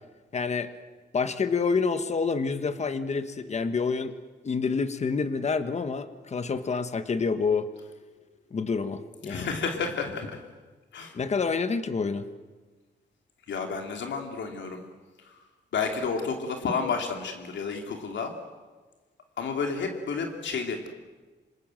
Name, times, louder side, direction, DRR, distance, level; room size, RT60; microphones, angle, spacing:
voice 1, 0.3-0.7 1.1-4.1 4.4-7.7 8.5-9.5 11.1-12.3, left 5 dB, 35° left, 10 dB, 1.4 m, -28 dB
voice 2, 9.3-10.4 10.9-11.2 13.5-14.8 15.2-15.4 15.7-18.3 19.4-20.9, left 5 dB, 85° left, 3 dB, 3.1 m, -31 dB
27.0 x 26.5 x 7.8 m, 1.3 s
wide cardioid pair, 160°, 19 cm